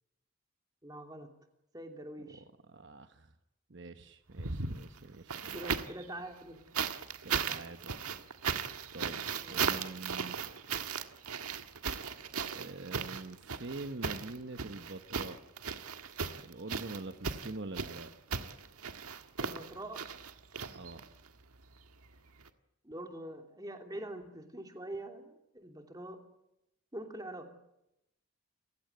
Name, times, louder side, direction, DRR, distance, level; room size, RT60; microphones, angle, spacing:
voice 1, 0.8-1.3 1.7-2.4 5.5-6.6 9.4-9.7 19.4-20.1 22.8-26.2 26.9-27.5, right 1 dB, 15° right, 5 dB, 2.9 m, -44 dB
voice 2, 2.3-3.3 3.7-5.6 7.2-7.9 8.9-10.6 12.3-15.4 16.4-18.1 20.7-21.1, right 2 dB, 55° right, 9 dB, 1.1 m, -45 dB
sound 1, 4.3-6.0 6.7-21.3 22.4-22.5, right 6 dB, 90° right, 1.7 m, -37 dB
29.5 x 16.0 x 9.3 m, 0.85 s
head